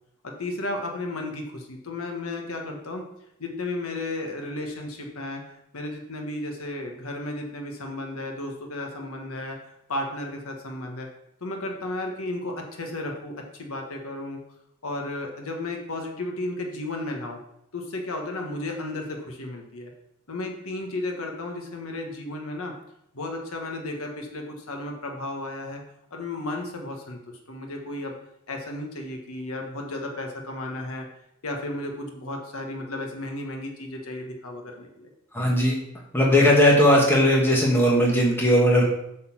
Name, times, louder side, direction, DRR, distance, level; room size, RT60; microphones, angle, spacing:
voice 1, 0.2-3.0 3.4-9.6 9.9-11.1 11.4-14.4 14.8-17.4 17.7-19.9 20.3-22.8 23.1-25.8 26.1-28.2 28.5-31.1 31.4-35.1, left 2 dB, 70° left, 2 dB, 1.3 m, -33 dB
voice 2, 35.3-35.8 36.1-38.8, equal, 10° left, -3 dB, 1.4 m, -18 dB
7.9 x 4.2 x 5.9 m, 0.78 s
head